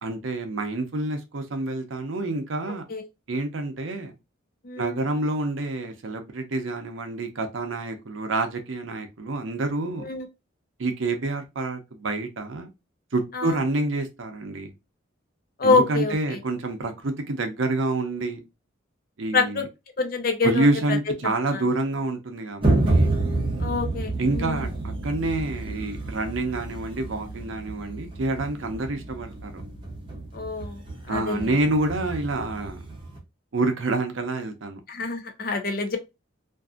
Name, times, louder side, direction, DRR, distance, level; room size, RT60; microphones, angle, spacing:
voice 1, 0.0-2.8 3.3-4.1 4.8-10.1 10.8-12.7 13.1-14.7 15.6-18.4 19.2-19.6 20.4-23.2 24.2-29.6 31.1-32.8 33.5-34.8, right 2 dB, 70° right, 0.6 m, -28 dB
voice 2, 4.6-5.1 10.0-10.3 13.3-13.6 15.6-16.4 19.3-19.7 20.0-20.7 21.2-21.6 23.6-24.6 30.3-30.8 31.1-31.5 34.9-36.0, left 4 dB, 45° left, 0.5 m, -26 dB
sound 1, 22.6-33.2, right 2 dB, 25° right, 0.7 m, -29 dB
2.6 x 2.5 x 2.4 m
head